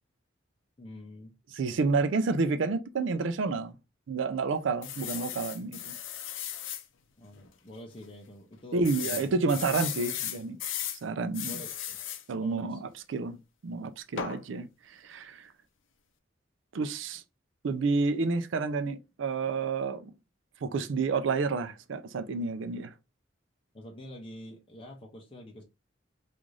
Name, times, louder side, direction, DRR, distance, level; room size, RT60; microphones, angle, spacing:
voice 1, 0.8-1.4 7.2-9.3 11.5-12.0 12.3-12.8 23.7-25.6, equal, 30° left, 0.6 m, -46 dB
voice 2, 1.5-3.7 4.1-6.0 8.7-10.6 11.0-11.6 12.3-13.4 13.6-15.5 16.7-17.2 17.6-20.1 20.6-22.9, right 4 dB, 75° right, 0.4 m, -30 dB
sound 1, 4.8-6.8 7.4-7.5 7.7-7.8 8.8-11.0 11.3-12.2 14.2-14.4, left 10 dB, 85° left, 0.5 m, -36 dB
3.7 x 2.5 x 3.1 m
head